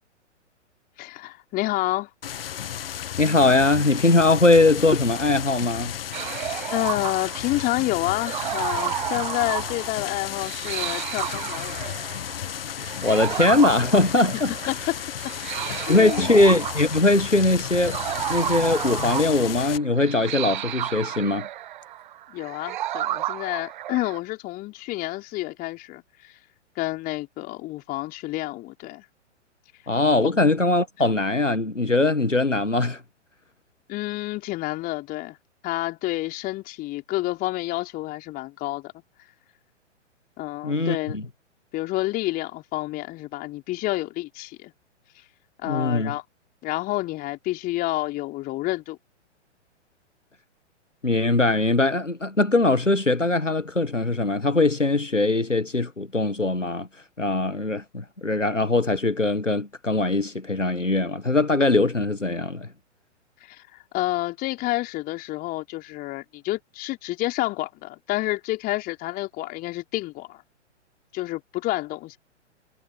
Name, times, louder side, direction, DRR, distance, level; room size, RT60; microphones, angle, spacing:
voice 1, 1.0-2.1 6.7-12.0 14.7-15.0 15.2-15.3 15.6-16.3 22.3-26.4 26.8-29.0 30.2-30.3 33.9-35.4 35.6-38.9 40.4-41.3 41.7-44.7 45.6-46.2 46.6-49.0 63.4-70.4 71.1-72.2, left 18 dB, 25° left, 4.1 m, -29 dB
sound 1, 2.2-19.8, left 10 dB, 50° left, 1.8 m, -34 dB
voice 2, 3.2-5.9 13.0-14.5 15.9-18.0 18.3-21.5 29.9-33.0 40.6-41.2 45.7-46.1 51.0-56.9 57.2-62.7, left 2 dB, 90° left, 1.5 m, -21 dB
sound 2, 6.1-24.2, right 13 dB, 40° right, 1.1 m, -32 dB
figure-of-eight pair, 115°, 36 cm